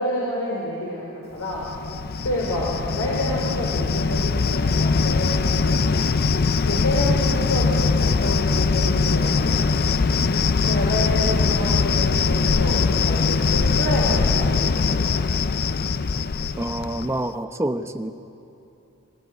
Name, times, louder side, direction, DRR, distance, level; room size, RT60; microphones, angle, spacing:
voice 1, 0.0-1.7 2.2-6.1 6.6-9.9 10.7-15.2, left 1 dB, 75° left, -4 dB, 4.2 m, -28 dB
Cricket, 1.5-17.2, left 4 dB, 45° left, 0.5 m, -21 dB
voice 2, 16.6-18.1, right 1 dB, 10° right, 7 dB, 0.8 m, -27 dB
25.0 x 16.0 x 9.5 m, 2.9 s
head